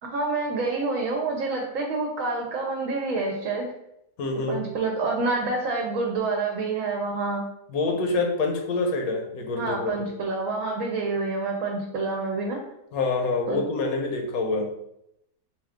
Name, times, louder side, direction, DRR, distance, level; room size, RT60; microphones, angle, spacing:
voice 1, 0.0-3.7 4.5-7.5 9.5-12.6 13.5-13.6, right 3 dB, 65° right, 1 dB, 1.0 m, -27 dB
voice 2, 4.2-4.6 7.7-9.9 12.9-14.7, left 3 dB, 75° left, 2 dB, 1.2 m, -26 dB
4.6 x 2.3 x 3.5 m, 0.79 s
omnidirectional pair, 1.6 m